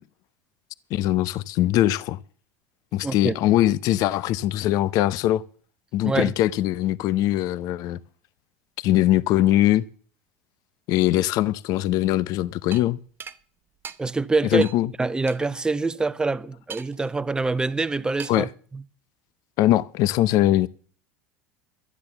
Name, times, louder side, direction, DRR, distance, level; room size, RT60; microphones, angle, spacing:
voice 1, 0.9-2.2 2.9-5.4 5.9-8.0 8.8-9.8 10.9-13.0 14.5-14.9 18.3-18.5 19.6-20.7, left 14 dB, 55° left, 0.6 m, -21 dB
voice 2, 3.0-3.3 6.0-6.3 14.0-14.6 15.0-18.5 18.7-18.8, right 3 dB, 10° right, 0.7 m, -25 dB
sound 1, 12.7-12.8 13.2-13.4 13.8-14.0 14.6-14.8 15.3-15.4 16.7-17.1 18.2-18.5, right 7 dB, 30° right, 1.1 m, -38 dB
12.0 x 10.5 x 7.0 m
hypercardioid pair, 100°, 7 cm